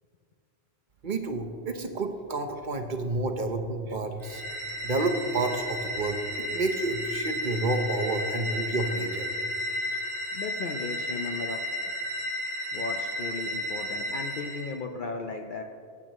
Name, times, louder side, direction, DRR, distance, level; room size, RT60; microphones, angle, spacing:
voice 1, 1.0-4.4 4.8-6.2 6.5-9.3, right 2 dB, 45° right, 5 dB, 1.0 m, -29 dB
sound 1, 4.2-14.7, left 1 dB, 25° left, 2.0 m, -33 dB
voice 2, 9.9-11.6 12.7-15.6, left 4 dB, 50° left, 3 dB, 0.7 m, -36 dB
18.5 x 8.4 x 3.1 m, 2.4 s
omnidirectional pair, 1.2 m